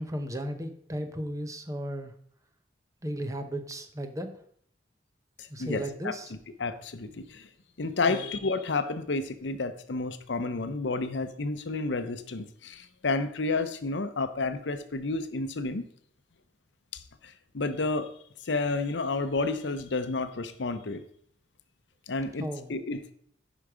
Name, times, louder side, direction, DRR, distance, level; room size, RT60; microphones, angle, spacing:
voice 1, 0.0-2.1 3.0-4.3 5.5-6.3 8.1-8.3 22.4-22.8, right 1 dB, 20° right, 8 dB, 0.8 m, -35 dB
voice 2, 5.4-6.2 6.6-7.5 7.8-15.9 16.9-18.1 18.4-21.0 22.1-23.1, left 3 dB, 80° left, 11 dB, 0.7 m, -31 dB
10.5 x 4.9 x 4.9 m, 0.64 s
head